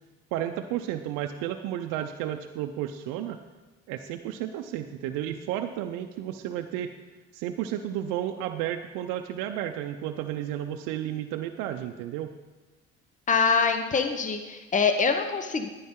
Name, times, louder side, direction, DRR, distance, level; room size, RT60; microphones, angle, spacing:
voice 1, 0.3-3.4 3.9-6.9 7.3-12.3, right 11 dB, 85° right, 5 dB, 0.6 m, -32 dB
voice 2, 13.3-15.7, left 5 dB, 25° left, 7 dB, 0.8 m, -24 dB
10.5 x 9.3 x 3.7 m, 1.2 s
supercardioid pair, 80°, 31 cm